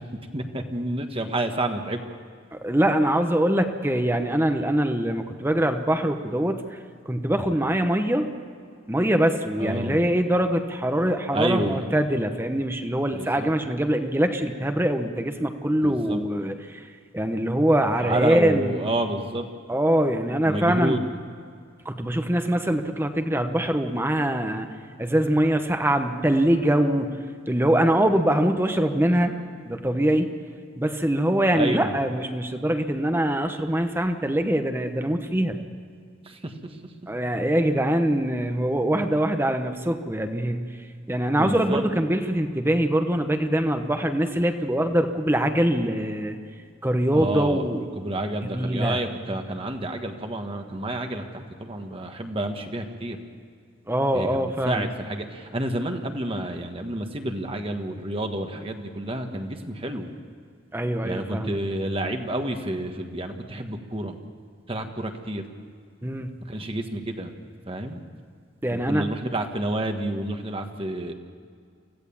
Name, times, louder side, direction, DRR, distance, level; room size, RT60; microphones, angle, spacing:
voice 1, 0.3-2.0 9.6-10.0 11.3-11.8 13.1-13.5 15.8-16.2 18.0-19.5 20.5-21.0 31.5-31.9 36.2-36.8 41.4-41.8 47.1-53.2 54.1-60.1 61.0-64.1 64.7-65.4 66.5-67.3 67.7-68.0 68.7-71.1, right 1 dB, 30° right, 5 dB, 1.5 m, -29 dB
voice 2, 2.5-6.8 7.1-8.3 8.9-16.9 17.1-18.7 19.7-21.0 21.8-24.7 25.0-27.1 27.5-29.3 29.6-30.3 30.8-35.6 37.1-40.6 41.1-46.4 46.8-47.9 48.4-49.0 53.9-54.9 60.7-61.6 66.0-66.3 68.6-69.1, right 1 dB, 10° right, 7 dB, 1.0 m, -23 dB
25.0 x 16.0 x 7.2 m, 2.1 s
head